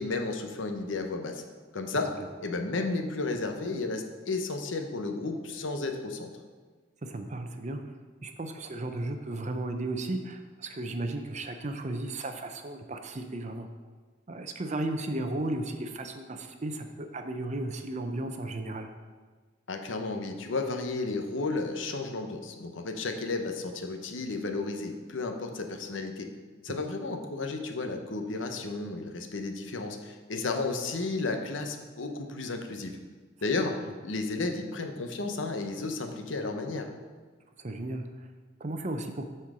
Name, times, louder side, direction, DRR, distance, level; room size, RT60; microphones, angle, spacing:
voice 1, 0.0-1.4 1.7-2.1 2.4-6.3 19.7-26.3 26.6-33.0 33.4-36.9, left 3 dB, 75° left, 5 dB, 0.9 m, -33 dB
voice 2, 7.0-7.8 8.2-13.7 14.3-18.9 26.7-26.8 37.6-38.3 38.6-39.3, right 2 dB, 35° right, 6 dB, 0.6 m, -35 dB
8.4 x 4.5 x 6.0 m, 1.4 s
head